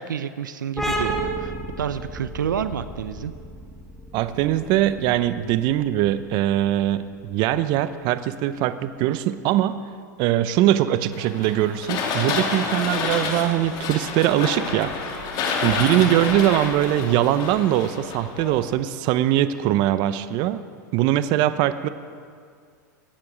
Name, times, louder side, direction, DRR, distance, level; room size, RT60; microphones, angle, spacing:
voice 1, 0.0-3.3 15.9-16.2, right 8 dB, 90° right, 13 dB, 0.6 m, -29 dB
sound 1, 0.8-8.1, right 1 dB, 5° left, 2.3 m, -33 dB
voice 2, 4.1-9.8 10.2-15.3 15.6-20.6 20.9-21.9, right 13 dB, 45° right, 13 dB, 0.7 m, -22 dB
sound 2, 11.1-18.7, left 5 dB, 45° left, 2.3 m, -28 dB
23.0 x 9.6 x 5.1 m, 2.1 s
hypercardioid pair, 110°, 10 cm